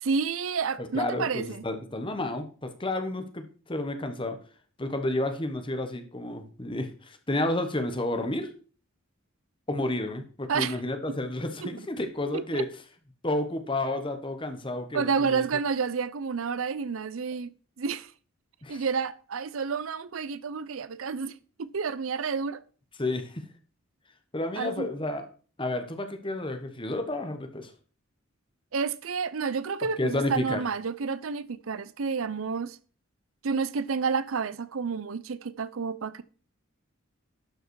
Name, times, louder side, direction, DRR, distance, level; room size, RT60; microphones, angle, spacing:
voice 1, 0.0-1.6 10.5-10.8 11.6-11.7 12.3-12.7 14.9-18.1 18.7-22.6 24.6-24.9 28.7-32.8 33.4-36.2, right 5 dB, 80° right, 0.6 m, -30 dB
voice 2, 0.8-4.4 4.8-8.5 9.7-12.7 13.2-15.4 18.6-18.8 23.0-23.4 24.3-25.3 25.6-27.7 30.0-30.6, left 2 dB, 25° left, 1.3 m, -31 dB
11.5 x 5.6 x 4.7 m
head